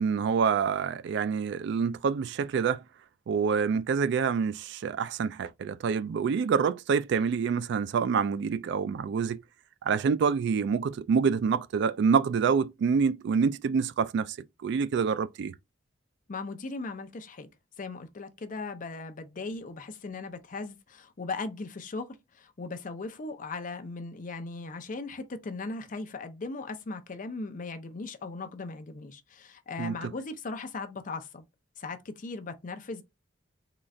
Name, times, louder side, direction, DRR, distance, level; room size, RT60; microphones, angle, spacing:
voice 1, 0.0-2.8 3.3-9.4 9.8-14.4 14.6-15.5 29.8-30.1, right 6 dB, 65° right, 0.3 m, -27 dB
voice 2, 16.3-17.5 17.8-31.4 31.8-33.0, left 3 dB, 45° left, 0.6 m, -38 dB
3.9 x 2.4 x 3.1 m
head